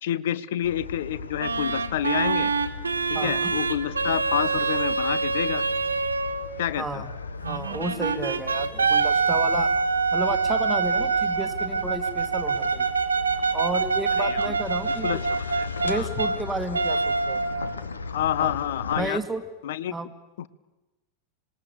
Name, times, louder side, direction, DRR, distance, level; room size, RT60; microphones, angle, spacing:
voice 1, 0.0-2.5 3.2-5.6 6.6-7.0 14.2-14.6 15.0-16.1 18.0-19.2 19.6-19.9 20.4-20.5, left 11 dB, 55° left, 17 dB, 0.8 m, -28 dB
sound 1, 0.6-19.1, left 4 dB, 75° left, 1.3 m, -37 dB
sound 2, 1.4-6.5 7.4-16.4 16.7-17.8, right 4 dB, 75° right, 1.3 m, -25 dB
voice 2, 3.1-3.5 6.8-7.1 7.5-9.7 10.1-12.9 13.5-15.2 15.8-17.4 18.4-18.5 19.0-19.4 19.9-20.1, right 2 dB, 10° right, 6 dB, 1.9 m, -32 dB
26.0 x 20.0 x 6.9 m, 1.1 s
figure-of-eight pair, 90°, 0 cm